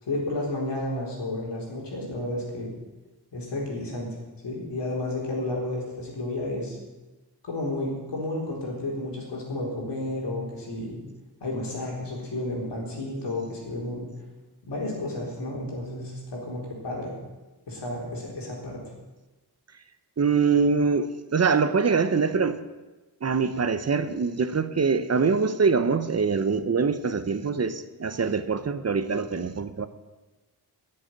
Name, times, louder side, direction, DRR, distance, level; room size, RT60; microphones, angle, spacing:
voice 1, 0.0-2.7 3.3-4.1 4.4-6.8 7.4-11.0 11.4-14.1 14.7-17.1 17.7-18.8, left 1 dB, 90° left, -3 dB, 4.3 m, -32 dB
voice 2, 20.2-22.6 23.2-29.9, right 5 dB, 40° right, 11 dB, 0.7 m, -24 dB
11.5 x 7.9 x 9.3 m, 1.1 s
wide cardioid pair, 130°, 41 cm